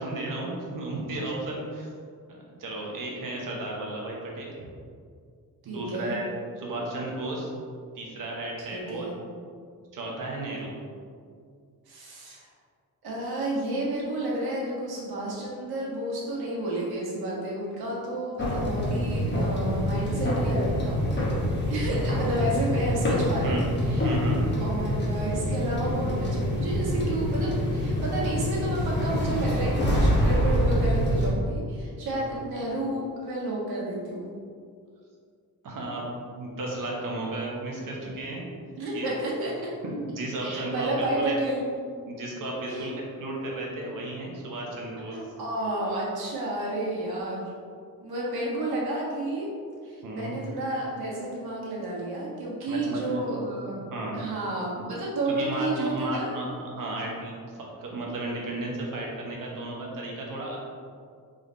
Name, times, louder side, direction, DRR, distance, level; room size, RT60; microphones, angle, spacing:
voice 1, 0.0-1.9 2.3-4.6 5.6-6.3 6.6-7.5 7.9-9.1 9.9-10.7 21.7-22.0 23.4-23.6 24.0-24.4 32.1-32.4 35.6-36.0 36.3-38.4 38.9-39.2 39.8-41.3 42.1-45.2 50.0-50.4 52.7-53.2 53.7-54.2 54.7-54.9 55.3-60.6, right 2 dB, 60° right, -2 dB, 1.1 m, -34 dB
voice 2, 5.7-6.2 8.7-9.1 11.9-12.5 13.0-21.0 21.7-24.1 24.6-34.3 38.8-39.7 40.4-41.6 42.7-42.9 45.1-47.5 48.0-49.5 49.8-53.8 54.1-56.3, right 1 dB, 90° right, -5 dB, 1.4 m, -31 dB
sound 1, 18.4-31.3, equal, 30° left, 1.0 m, -26 dB
3.9 x 3.4 x 3.9 m, 2.2 s
wide cardioid pair, 155°, 36 cm